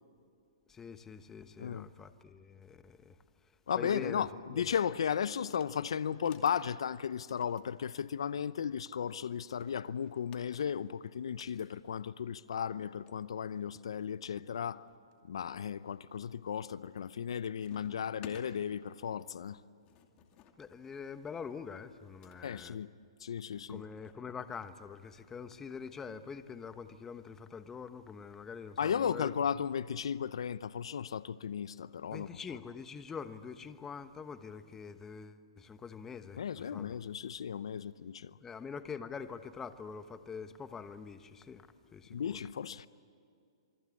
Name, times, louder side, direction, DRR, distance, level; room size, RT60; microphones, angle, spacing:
voice 1, 0.7-3.2 3.8-4.6 20.6-22.8 23.7-29.3 32.1-37.0 38.4-42.4, left 6 dB, 15° left, 1.1 m, -45 dB
voice 2, 1.6-1.9 3.7-14.9 15.3-19.6 22.4-22.9 23.2-23.8 28.8-32.4 36.4-38.4 42.1-42.9, left 8 dB, 75° left, 0.7 m, -35 dB
sound 1, 5.4-5.8 6.1-6.6 7.2-8.6 9.4-11.7 12.8-12.9 13.1-13.2 13.8-14.5 15.1-15.6 16.2-16.5 16.8-17.3 17.6-18.5 19.5-22.4 23.4-24.5, left 9 dB, 30° left, 2.6 m, -58 dB
28.0 x 23.0 x 8.5 m
hypercardioid pair, 140°, 3 cm